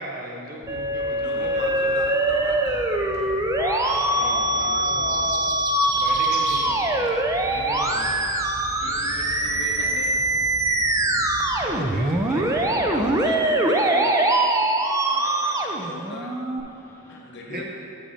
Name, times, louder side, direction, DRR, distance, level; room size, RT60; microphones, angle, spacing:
voice 1, 0.0-2.2 4.1-5.5 5.9-8.2 11.6-13.1 17.5-17.6, equal, 45° right, -1 dB, 1.0 m, -37 dB
sound 1, 0.6-13.2, left 2 dB, 80° left, 0.5 m, -42 dB
Musical instrument, 0.7-16.6, right 1 dB, 15° right, 0.4 m, -23 dB
voice 2, 1.2-3.5 8.7-10.2 11.7-12.6 12.9-14.2 15.0-16.4 17.1-17.6, left 1 dB, 55° left, -1 dB, 1.0 m, -39 dB
voice 3, 3.6-5.7 14.3-14.7 16.7-17.2, equal, 10° left, -3 dB, 1.0 m, -36 dB
sound 2, 4.6-6.7, right 3 dB, 85° right, 1.0 m, -35 dB
6.9 x 6.0 x 4.2 m, 2.6 s
head